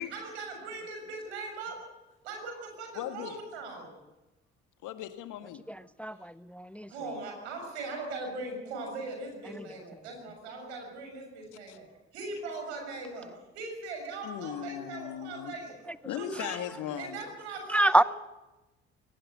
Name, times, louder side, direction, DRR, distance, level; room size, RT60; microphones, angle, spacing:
voice 1, 0.1-1.8 2.2-3.9 6.9-11.9 12.1-13.3 13.5-15.8 16.2-16.5 17.0-18.1, right 3 dB, 80° right, 3 dB, 6.7 m, -40 dB
voice 2, 3.0-3.4 4.8-5.6 11.7-11.8 14.2-15.5 16.0-17.2, left 11 dB, 65° left, 9 dB, 1.9 m, -38 dB
voice 3, 6.0-6.9 16.3-16.4 17.7-18.0, right 1 dB, 5° left, 17 dB, 0.7 m, -25 dB
22.5 x 19.0 x 8.1 m, 1.0 s
hypercardioid pair, 50°, 33 cm